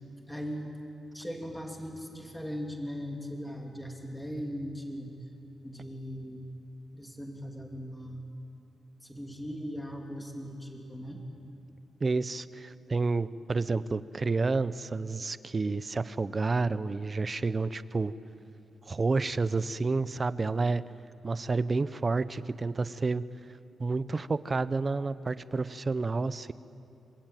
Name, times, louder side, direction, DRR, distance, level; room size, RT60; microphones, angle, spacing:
voice 1, 0.3-0.7 1.1-5.1 5.6-6.4 6.9-8.2 9.0-11.2, equal, 5° left, 1 dB, 2.5 m, -39 dB
voice 2, 12.0-18.1 18.9-20.8 21.2-23.2 23.8-26.5, right 3 dB, 25° right, 15 dB, 0.6 m, -30 dB
26.5 x 24.5 x 9.1 m, 2.7 s
wide cardioid pair, 175°, 0 cm